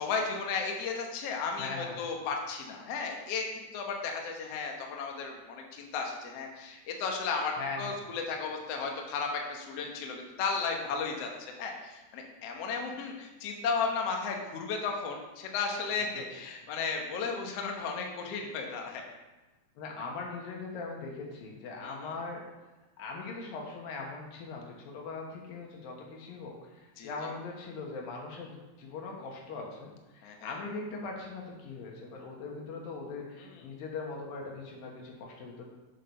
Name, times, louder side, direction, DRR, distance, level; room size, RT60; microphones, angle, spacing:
voice 1, 0.0-19.0 21.8-22.1 27.0-27.1 30.2-30.6 33.4-33.7, left 5 dB, 85° left, 2 dB, 1.3 m, -34 dB
voice 2, 1.6-2.1 7.6-7.9 19.8-22.4 23.0-35.6, left 3 dB, 70° left, -1 dB, 3.0 m, -40 dB
7.6 x 6.4 x 5.4 m, 1.1 s
omnidirectional pair, 4.6 m